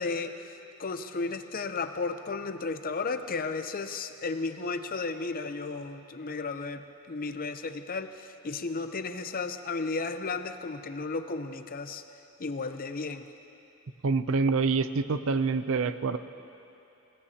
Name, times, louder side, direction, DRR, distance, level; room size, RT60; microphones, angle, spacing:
voice 1, 0.0-12.0 12.4-13.2, left 4 dB, 40° left, 9 dB, 0.6 m, -34 dB
voice 2, 14.0-16.2, right 4 dB, 65° right, 12 dB, 0.5 m, -26 dB
29.0 x 17.0 x 2.8 m, 2.8 s
head